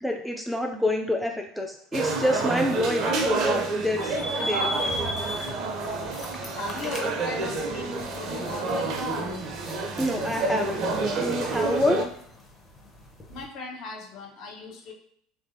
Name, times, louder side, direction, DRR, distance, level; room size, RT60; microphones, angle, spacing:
voice 1, 0.0-4.9 10.0-10.9 11.1-12.1, left 1 dB, 5° left, 3 dB, 0.4 m, -27 dB
sound 1, 1.9-12.0, right 3 dB, 50° right, 0.5 m, -29 dB
sound 2, 4.0-13.5, equal, 20° left, 0.8 m, -38 dB
voice 2, 6.5-9.3 13.3-14.9, left 3 dB, 55° left, 0 dB, 0.8 m, -38 dB
3.1 x 2.5 x 2.6 m, 0.68 s
figure-of-eight pair, 70°, 0 cm